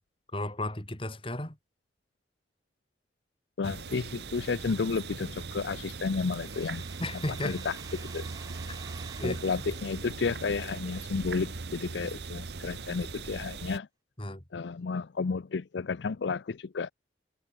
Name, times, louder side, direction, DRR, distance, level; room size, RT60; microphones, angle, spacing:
voice 1, 0.3-1.6 7.0-7.6 8.7-8.8 9.2-9.4 14.2-14.4, left 1 dB, 30° left, 3.4 m, -34 dB
voice 2, 3.6-6.8 7.4-8.3 9.2-13.9 14.5-16.9, left 4 dB, 85° left, 0.5 m, -32 dB
sound 1, 3.6-13.8, right 4 dB, 70° right, 0.9 m, -40 dB
sound 2, 6.3-11.8, right 4 dB, 20° right, 6.0 m, -52 dB
head